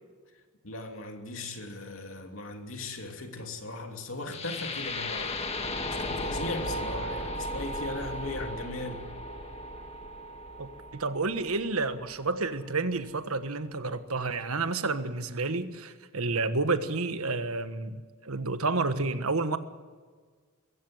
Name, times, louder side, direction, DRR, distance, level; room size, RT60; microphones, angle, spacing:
voice 1, 0.6-5.4 6.0-9.1, left 2 dB, 65° left, 2.9 m, -38 dB
sound 1, 4.3-12.3, left 1 dB, 30° left, 1.8 m, -36 dB
voice 2, 10.6-19.6, right 3 dB, 80° right, 1.4 m, -30 dB
23.0 x 15.0 x 7.9 m
head